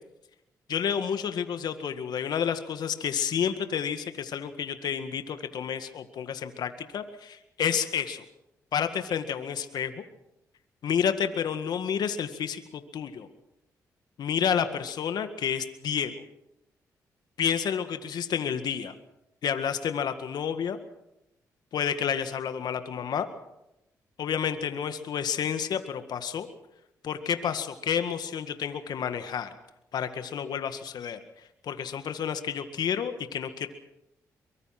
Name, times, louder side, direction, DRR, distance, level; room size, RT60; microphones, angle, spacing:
voice 1, 0.7-8.3 8.7-10.0 10.8-13.3 14.2-16.1 17.4-18.9 19.4-20.8 21.7-23.3 24.2-26.5 27.0-29.5 29.9-31.2 31.6-33.7, left 8 dB, 70° left, 9 dB, 1.9 m, -30 dB
23.5 x 22.0 x 6.0 m, 0.87 s
supercardioid pair, 60°, 7 cm